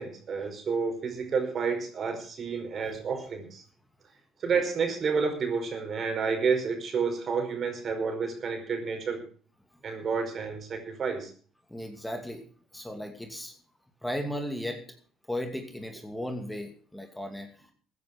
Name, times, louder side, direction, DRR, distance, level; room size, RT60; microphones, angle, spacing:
voice 1, 0.0-3.6 4.4-9.2 9.8-11.3, right 5 dB, 45° right, 5 dB, 5.1 m, -30 dB
voice 2, 11.7-12.4 12.7-13.5 14.0-14.8 15.3-17.6, equal, 5° left, 5 dB, 2.6 m, -35 dB
15.5 x 9.5 x 6.1 m, 0.43 s
hypercardioid pair, 70°, 0 cm